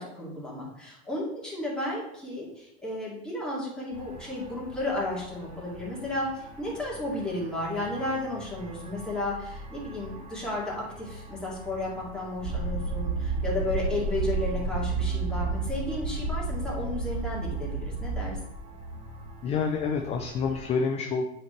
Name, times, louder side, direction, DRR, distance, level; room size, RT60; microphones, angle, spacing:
voice 1, 0.0-18.4, left 1 dB, ahead, -6 dB, 2.3 m, -33 dB
sound 1, 3.9-20.6, equal, 20° right, 1.0 m, -44 dB
sound 2, 12.4-18.3, right 4 dB, 45° right, 1.0 m, -30 dB
voice 2, 19.4-21.2, left 5 dB, 20° left, 4 dB, 0.4 m, -28 dB
7.9 x 4.3 x 3.2 m, 0.81 s
supercardioid pair, 125°, 32 cm